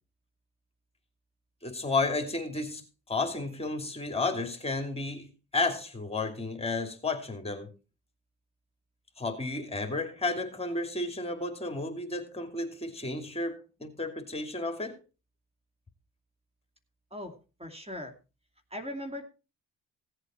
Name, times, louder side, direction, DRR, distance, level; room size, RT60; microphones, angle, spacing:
voice 1, 1.6-2.8 3.1-5.3 5.5-7.7 9.2-14.9, left 3 dB, 20° left, 2.7 m, -32 dB
voice 2, 17.1-18.1 18.7-19.3, left 1 dB, 20° right, 2.5 m, -39 dB
17.0 x 8.1 x 4.4 m
cardioid pair, 90°, 30 cm